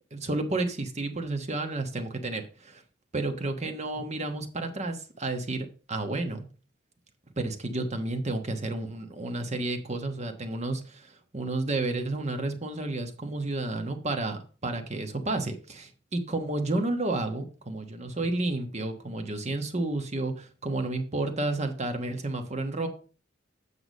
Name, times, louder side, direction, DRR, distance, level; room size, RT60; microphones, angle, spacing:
voice 1, 0.1-2.8 3.1-6.5 7.4-22.9, right 2 dB, 35° right, 6 dB, 1.2 m, -31 dB
8.3 x 5.9 x 5.2 m, 0.37 s
head